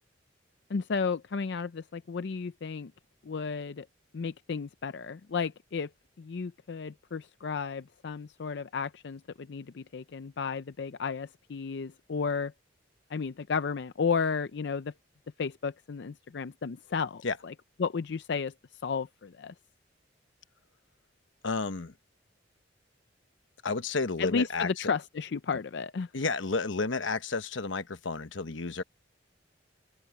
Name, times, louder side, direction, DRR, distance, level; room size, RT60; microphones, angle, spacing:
voice 1, 0.7-2.9 3.2-3.9 4.1-5.9 6.2-12.5 13.1-14.9 15.4-17.5 17.8-19.5 24.2-26.1, left 5 dB, 65° left, 0.5 m, -33 dB
voice 2, 21.4-21.9 23.6-24.9 26.1-28.8, left 3 dB, 90° left, 1.1 m, -31 dB
open air
head